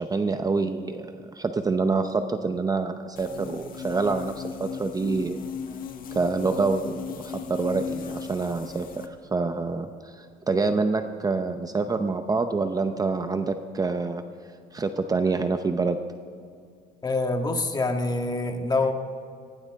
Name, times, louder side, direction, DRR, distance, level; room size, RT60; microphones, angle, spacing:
voice 1, 0.0-5.4 6.1-8.9 9.3-14.2 14.7-16.0, right 4 dB, 20° right, 8 dB, 0.7 m, -26 dB
sound 1, 3.2-9.1, left 7 dB, 55° left, 1.4 m, -36 dB
voice 2, 17.0-18.9, left 2 dB, 25° left, 4 dB, 1.6 m, -25 dB
19.5 x 16.5 x 3.6 m, 2.4 s
cardioid pair, 110°, 17 cm